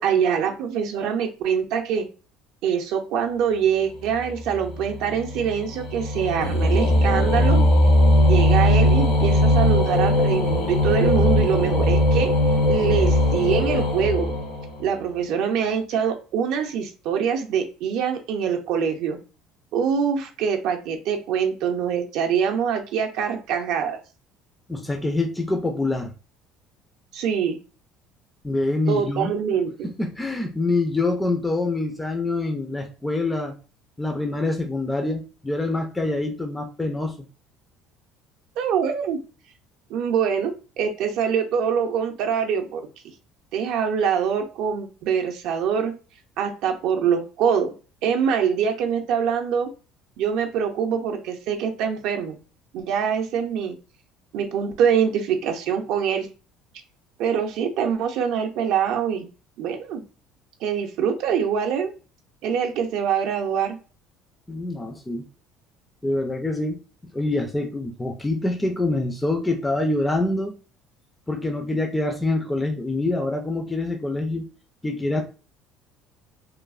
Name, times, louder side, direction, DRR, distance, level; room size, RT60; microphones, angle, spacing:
voice 1, 0.0-2.1 2.6-7.6 8.2-12.3 12.7-14.3 14.8-19.2 19.7-24.0 27.1-27.6 28.9-29.9 38.6-39.2 39.9-42.9 43.5-45.9 46.4-47.7 48.0-49.7 50.2-52.4 52.7-53.8 54.3-56.3 57.2-59.3 59.6-60.0 60.6-61.9 62.4-63.8, right 7 dB, 65° right, 4 dB, 0.5 m, -24 dB
sound 1, 4.1-15.0, left 1 dB, 70° left, 0.9 m, -20 dB
voice 2, 24.7-26.1 28.4-29.3 29.8-33.5 34.0-37.2 64.5-65.3 66.0-66.8 67.1-70.6 71.3-74.5 74.8-75.2, left 2 dB, 10° left, 3 dB, 0.3 m, -25 dB
3.0 x 2.0 x 2.3 m, 0.34 s
cardioid pair, 150°, 0 cm